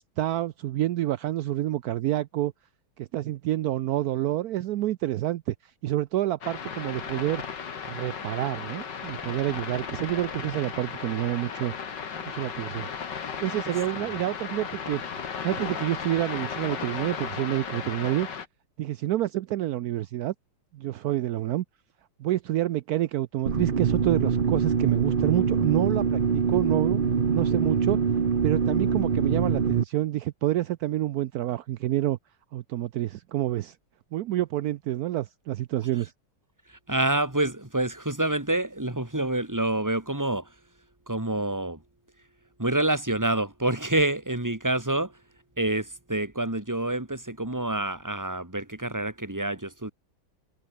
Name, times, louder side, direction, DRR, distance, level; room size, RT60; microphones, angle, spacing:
voice 1, 0.0-2.5 3.0-7.4 7.9-11.7 12.3-12.9 13.4-15.0 15.3-18.3 18.8-20.3 20.7-21.6 22.2-27.0 27.3-28.0 28.4-32.2 32.5-33.8 34.1-36.1, right 14 dB, 75° right, 0.9 m, -28 dB
sound 1, 6.4-18.5, left 6 dB, 60° left, 2.5 m, -35 dB
sound 2, 23.5-29.8, right 6 dB, 35° right, 0.9 m, -24 dB
voice 2, 36.7-40.5 41.1-41.8 42.6-45.2 45.6-49.9, right 2 dB, 10° right, 2.5 m, -27 dB
omnidirectional pair, 2.2 m